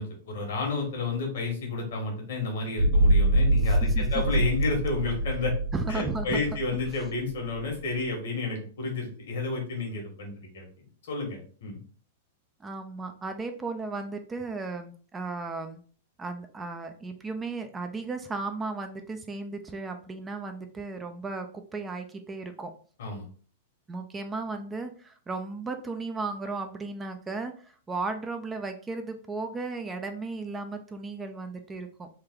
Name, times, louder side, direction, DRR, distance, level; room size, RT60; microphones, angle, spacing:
voice 1, 0.0-5.5 5.9-10.6 11.1-11.8 23.0-23.2, left 3 dB, 70° left, 1 dB, 1.4 m, -31 dB
sound 1, 2.8-8.0, right 1 dB, 75° right, 1.0 m, -25 dB
voice 2, 3.7-4.0 5.7-6.4 12.6-15.8 16.2-22.7 23.9-32.1, right 3 dB, 15° right, 6 dB, 0.4 m, -35 dB
3.3 x 2.1 x 3.7 m, 0.43 s
hypercardioid pair, 125°, 0 cm